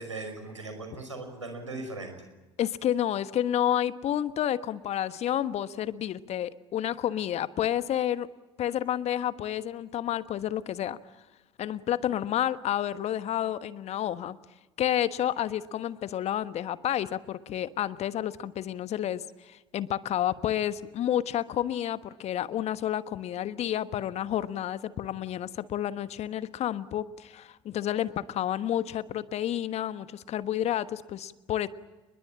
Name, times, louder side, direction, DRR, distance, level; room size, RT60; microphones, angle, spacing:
voice 1, 0.0-2.1, right 3 dB, 90° right, 5 dB, 5.5 m, -38 dB
voice 2, 2.6-8.3 8.6-11.0 11.6-14.4 14.8-31.7, left 11 dB, 45° left, 14 dB, 1.2 m, -30 dB
30.0 x 21.5 x 8.7 m, 1.1 s
figure-of-eight pair, 65°, 15 cm